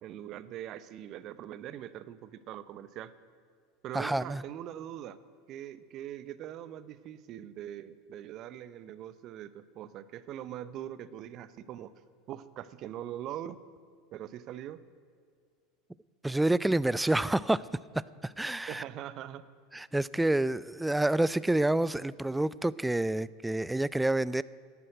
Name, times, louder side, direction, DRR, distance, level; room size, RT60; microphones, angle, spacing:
voice 1, 0.0-3.1 3.8-5.2 5.5-11.9 12.3-13.6 14.1-14.8 18.7-19.5, right 11 dB, 45° right, 15 dB, 0.7 m, -42 dB
voice 2, 3.9-4.4 16.2-17.7 18.2-18.8 19.7-24.4, right 1 dB, 5° right, 20 dB, 0.4 m, -28 dB
11.0 x 10.5 x 9.1 m, 2.1 s
hypercardioid pair, 80°, 0 cm